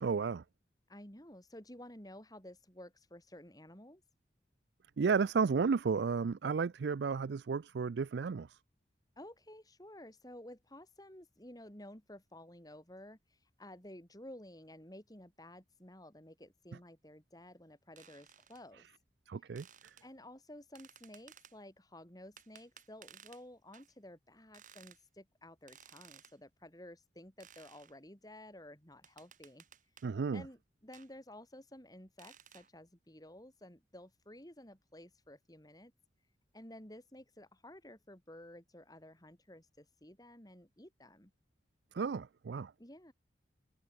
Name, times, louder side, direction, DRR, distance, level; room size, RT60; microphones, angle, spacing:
voice 1, 0.0-0.4 5.0-8.5 19.3-19.7 30.0-30.4 41.9-42.7, right 5 dB, 70° right, 0.4 m, -32 dB
voice 2, 0.9-4.0 9.2-18.9 19.3-19.5 20.0-29.6 30.3-35.9 36.5-41.3 42.8-43.1, left 1 dB, 20° left, 4.7 m, -53 dB
sound 1, 18.0-18.6 19.6-20.1 20.8-21.6 22.4-23.4 23.7-23.9 24.5-25.0 25.7-26.4 27.4-27.9 29.0-30.1 30.9-31.1 32.2-32.7, right 8 dB, 45° right, 6.9 m, -58 dB
head